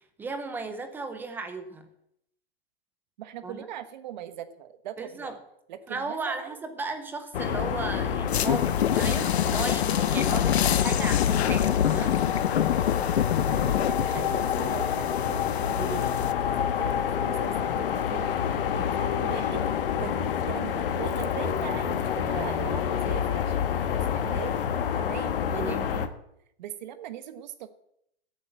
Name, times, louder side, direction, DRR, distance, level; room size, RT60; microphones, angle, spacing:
voice 1, 0.0-1.9 3.4-3.7 5.0-5.4 5.9-12.2 15.8-16.1 18.8-18.9 25.5-25.9, right 3 dB, 5° right, 8 dB, 0.6 m, -35 dB
voice 2, 3.2-5.4 5.7-6.6 13.5-19.6 20.0-26.1 26.6-27.7, right 10 dB, 45° right, 12 dB, 1.3 m, -40 dB
sound 1, 7.3-26.1, left 8 dB, 60° left, 1.4 m, -28 dB
sound 2, 8.3-16.3, left 10 dB, 85° left, 0.9 m, -26 dB
13.5 x 8.2 x 7.9 m, 0.76 s
hypercardioid pair, 160°, 31 cm